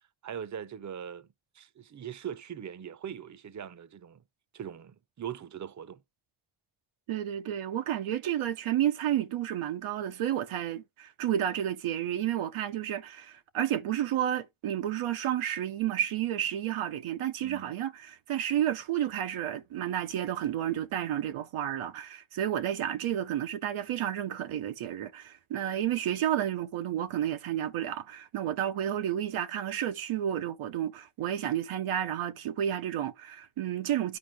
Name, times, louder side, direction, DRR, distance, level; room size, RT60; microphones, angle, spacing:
voice 1, 0.2-1.3 1.5-4.2 4.5-6.0 17.4-17.7, right 9 dB, 35° right, 0.7 m, -41 dB
voice 2, 7.1-34.2, right 11 dB, 85° right, 0.8 m, -31 dB
10.5 x 4.2 x 3.5 m
cardioid pair, 60°, 48 cm